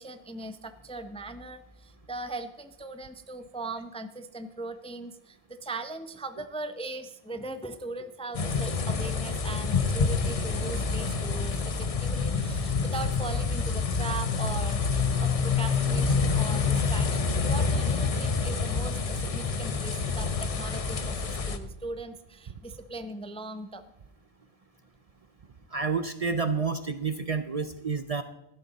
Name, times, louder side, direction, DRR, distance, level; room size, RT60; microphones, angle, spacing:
voice 1, 0.0-23.8, right 2 dB, 10° left, 10 dB, 0.5 m, -39 dB
sound 1, 8.3-21.6, left 5 dB, 40° left, 0.8 m, -27 dB
voice 2, 25.7-28.2, right 5 dB, 45° right, 11 dB, 0.5 m, -29 dB
14.5 x 12.0 x 4.0 m, 0.91 s
omnidirectional pair, 1.1 m